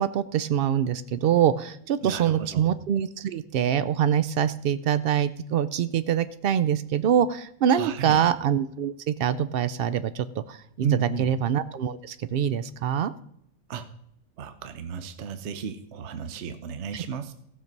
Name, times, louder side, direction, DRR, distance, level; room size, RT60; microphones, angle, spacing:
voice 1, 0.0-10.9 11.2-13.1 16.9-17.0, right 9 dB, 80° right, 14 dB, 0.5 m, -25 dB
voice 2, 2.0-2.7 7.7-8.2 10.8-11.3 13.7-13.9 14.4-17.3, right 7 dB, 55° right, 9 dB, 1.0 m, -33 dB
15.0 x 6.6 x 5.3 m, 0.73 s
omnidirectional pair, 1.5 m